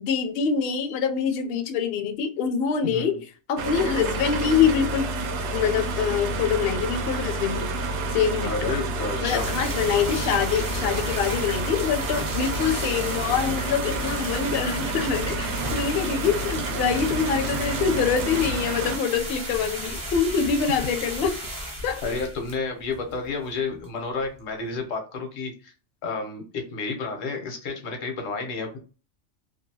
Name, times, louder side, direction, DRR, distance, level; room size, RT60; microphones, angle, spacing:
voice 1, 0.0-5.0 5.5-8.8 9.2-21.4 21.8-22.0, left 7 dB, 65° left, 0.6 m, -25 dB
voice 2, 2.8-3.2 8.4-9.5 15.6-15.8 22.0-25.7 26.0-28.8, left 4 dB, 90° left, 1.2 m, -31 dB
sound 1, 3.6-19.0, right 2 dB, 70° right, 0.8 m, -29 dB
sound 2, 9.2-23.6 23.8-23.9 24.2-24.3 24.7-24.8, equal, 25° right, 0.4 m, -35 dB
2.8 x 2.4 x 2.7 m
omnidirectional pair, 1.3 m